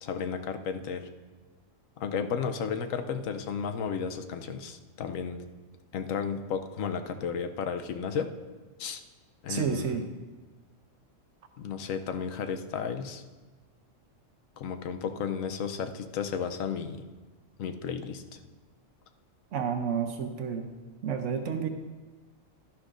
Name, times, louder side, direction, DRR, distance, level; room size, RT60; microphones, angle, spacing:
voice 1, 0.0-1.1 2.0-5.4 5.9-8.3 8.8-9.0 9.4-10.1 11.6-13.2 14.6-17.0 17.6-18.4, left 6 dB, 85° left, 8 dB, 1.1 m, -33 dB
voice 2, 9.5-10.0 19.5-20.7 21.0-21.7, right 7 dB, 70° right, 5 dB, 1.0 m, -30 dB
12.5 x 11.5 x 2.5 m, 1.3 s
omnidirectional pair, 1.4 m